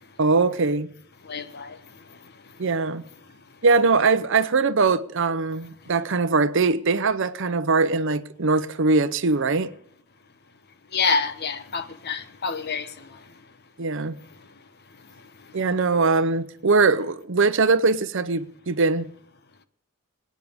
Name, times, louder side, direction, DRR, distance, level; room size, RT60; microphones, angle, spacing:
voice 1, 0.2-0.9 2.6-3.0 3.6-9.7 13.8-14.2 15.5-19.1, right 4 dB, 60° right, 0.7 m, -21 dB
voice 2, 1.2-1.8 10.9-13.1, left 5 dB, 50° left, 0.9 m, -27 dB
24.0 x 9.4 x 3.6 m
head